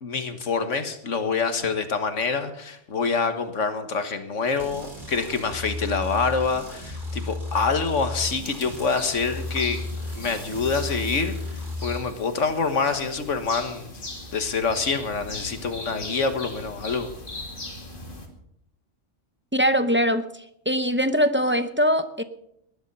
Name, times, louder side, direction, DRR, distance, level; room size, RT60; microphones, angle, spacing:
voice 1, 0.0-9.8 10.1-11.4 11.8-14.0 14.3-17.1, left 4 dB, 80° left, 8 dB, 1.8 m, -26 dB
sound 1, 4.6-12.0, left 2 dB, 40° right, 3.3 m, -34 dB
sound 2, 8.2-18.3, left 2 dB, 45° left, 2.5 m, -40 dB
voice 2, 19.5-20.2 20.7-22.2, equal, 10° right, 10 dB, 0.7 m, -21 dB
19.5 x 11.0 x 5.5 m, 0.75 s
omnidirectional pair, 1.3 m